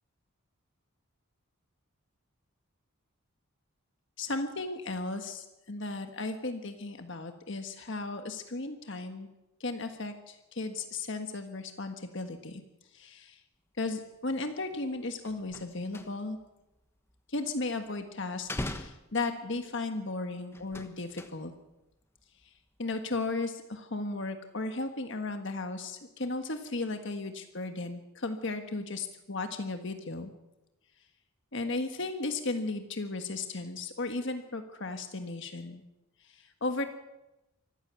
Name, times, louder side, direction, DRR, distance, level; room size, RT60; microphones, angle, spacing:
voice 1, 4.2-9.3 9.6-12.6 12.9-13.4 13.8-16.4 17.3-18.5 18.8-21.5 22.8-30.3 31.5-35.8 36.2-36.9, left 3 dB, 55° left, 6 dB, 1.5 m, -35 dB
sound 1, 14.7-14.9 15.1-16.5 16.7-17.9 18.3-19.8 20.5-21.7 22.0-22.5 22.8-23.0, left 1 dB, 10° left, 1.2 m, -41 dB
25.0 x 15.0 x 7.0 m, 0.95 s
head